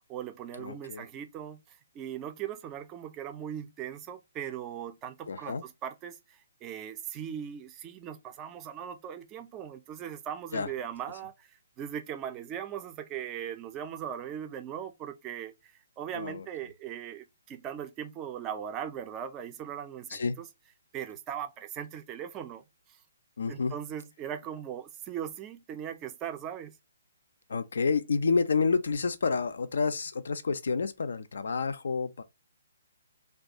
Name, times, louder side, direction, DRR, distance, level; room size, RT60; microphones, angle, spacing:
voice 1, 0.0-11.5 11.8-20.4 20.9-23.0 23.5-26.7, right 9 dB, 20° right, 0.3 m, -39 dB
voice 2, 0.6-1.1 5.3-5.6 10.5-10.7 16.1-16.4 20.1-20.4 23.4-23.7 27.5-32.2, left 4 dB, 60° left, 0.3 m, -29 dB
2.3 x 2.2 x 2.7 m
figure-of-eight pair, 130°, 0 cm